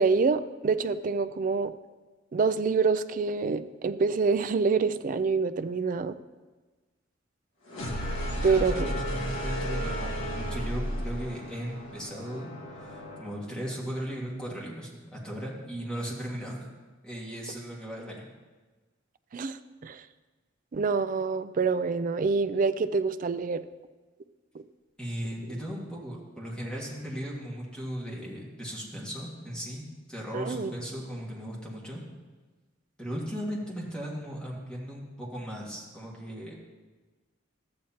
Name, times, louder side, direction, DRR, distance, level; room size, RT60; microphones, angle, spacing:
voice 1, 0.0-1.7 2.3-6.2 8.4-8.7 19.3-20.0 20.7-23.6 30.3-30.7, right 4 dB, 40° right, 12 dB, 0.4 m, -26 dB
sound 1, 7.7-13.5, equal, 85° left, 1.5 m, -33 dB
voice 2, 8.4-16.7 17.0-18.3 25.0-32.0 33.0-36.5, equal, 5° left, -4 dB, 1.8 m, -37 dB
13.0 x 8.6 x 2.9 m, 1.3 s
head